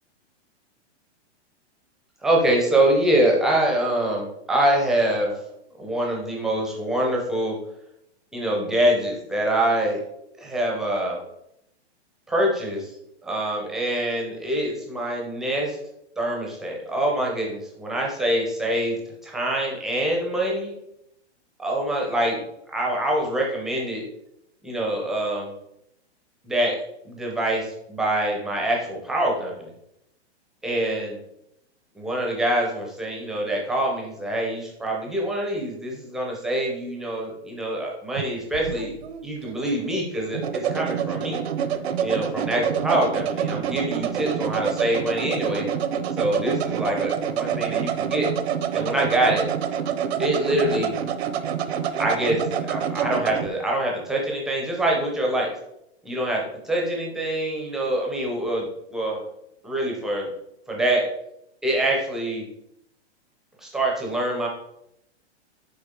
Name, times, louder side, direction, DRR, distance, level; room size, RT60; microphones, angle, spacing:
voice 1, 2.2-5.3 5.8-7.6 8.3-10.0 10.4-11.2 12.3-12.9 13.2-15.8 16.2-20.7 21.6-22.4 22.7-24.0 24.6-25.5 26.4-26.8 27.1-29.7 30.6-31.2 31.9-38.9 39.2-41.4 42.0-45.7 46.2-48.3 48.7-49.4 50.2-50.9 52.0-55.5 56.0-59.2 59.6-60.3 60.7-61.0 61.6-62.5 63.6-64.5, right 1 dB, ahead, -1 dB, 0.5 m, -25 dB
sound 1, 38.2-53.5, right 8 dB, 70° right, 0.7 m, -27 dB
6.7 x 4.9 x 3.6 m, 0.79 s
hypercardioid pair, 165°, 34 cm